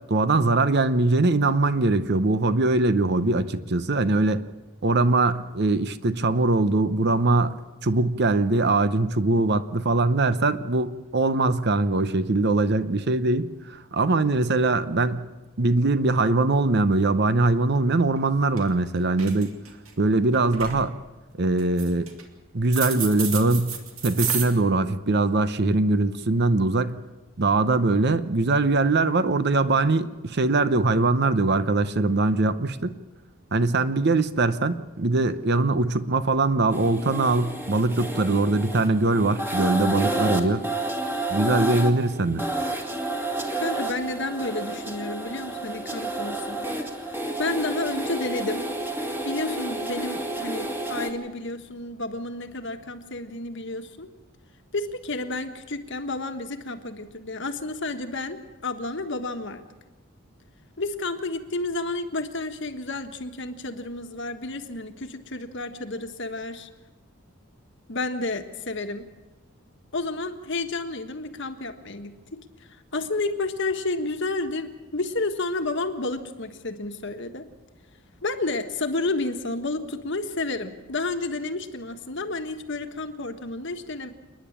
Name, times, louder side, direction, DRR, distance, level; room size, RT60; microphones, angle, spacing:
voice 1, 0.1-4.4 4.8-15.2 15.6-19.5 20.0-20.9 21.4-22.1 22.5-23.8 24.0-27.0 27.4-33.0 33.5-40.6 41.3-42.5, right 2 dB, 50° right, 13 dB, 0.8 m, -22 dB
sound 1, 18.2-18.3 18.6-18.8 19.1-19.9 20.3-20.8 21.6-22.2 22.7-24.4, right 7 dB, 75° right, 2.5 m, -30 dB
sound 2, 36.7-51.1, right 1 dB, 10° right, 1.9 m, -30 dB
voice 2, 43.6-46.8 47.1-48.7 49.2-54.1 54.7-58.4 58.6-59.7 60.8-66.7 67.9-69.0 69.9-77.5 78.2-84.1, left 2 dB, 55° left, 7 dB, 1.5 m, -31 dB
28.5 x 10.5 x 8.7 m, 1.2 s
head